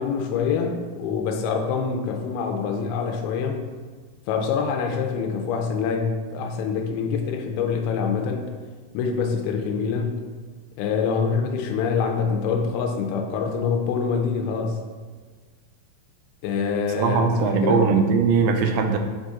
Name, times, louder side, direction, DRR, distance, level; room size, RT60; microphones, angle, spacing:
voice 1, 0.0-3.6 4.3-8.5 8.9-10.2 10.8-14.8 16.4-17.9, left 5 dB, 80° left, 4 dB, 2.5 m, -25 dB
voice 2, 17.0-19.0, right 5 dB, 85° right, 5 dB, 2.5 m, -20 dB
7.4 x 4.0 x 3.6 m, 1.5 s
omnidirectional pair, 4.5 m